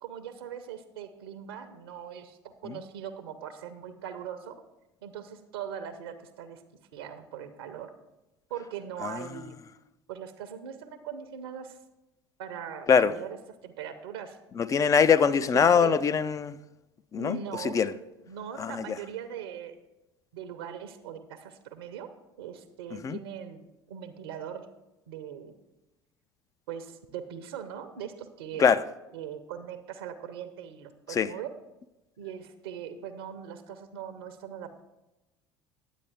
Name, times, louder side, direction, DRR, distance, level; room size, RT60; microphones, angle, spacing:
voice 1, 0.0-4.6 5.0-6.6 6.9-7.9 8.5-9.6 10.1-11.8 12.4-13.4 13.6-14.4 15.2-16.0 17.2-17.8 18.3-19.8 20.3-22.1 22.4-23.6 23.9-24.7 25.1-25.5 26.7-28.7 29.1-31.5 32.2-34.8, right 8 dB, 70° right, 0.7 m, -40 dB
voice 2, 14.6-16.5 17.1-17.4 17.7-17.9 18.6-18.7 23.0-23.2 28.6-28.8 31.2-31.3, left 6 dB, 25° left, 0.4 m, -22 dB
10.0 x 8.3 x 3.4 m
figure-of-eight pair, 65°, 13 cm